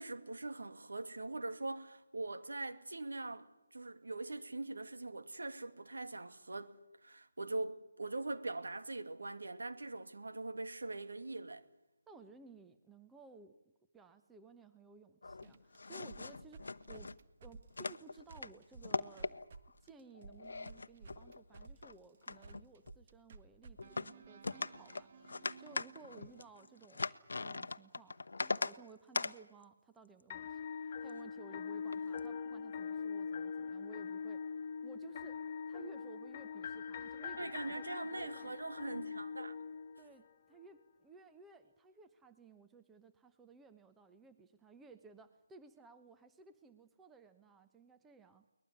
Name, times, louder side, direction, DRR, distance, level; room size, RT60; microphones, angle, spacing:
voice 1, 0.0-6.7 7.0-11.7 37.4-39.6, right 2 dB, 70° right, 2.3 m, -42 dB
voice 2, 12.1-17.1 17.4-19.3 19.8-27.0 27.3-34.5 34.8-35.4 35.7-38.6 40.0-48.4, right 4 dB, 5° right, 1.0 m, -58 dB
sound 1, 15.2-17.1 17.7-18.5 18.8-19.7 20.1-21.9 22.2-22.9 23.8-24.1 24.4-28.7 29.1-29.3 31.1-31.3 31.9-32.2, left 3 dB, 65° left, 0.9 m, -41 dB
sound 2, 15.3-19.6 19.9-27.1, right 4 dB, 40° right, 1.6 m, -56 dB
sound 3, 30.3-40.3, left 6 dB, 30° left, 1.0 m, -43 dB
22.5 x 20.0 x 9.7 m
figure-of-eight pair, 155°, 0 cm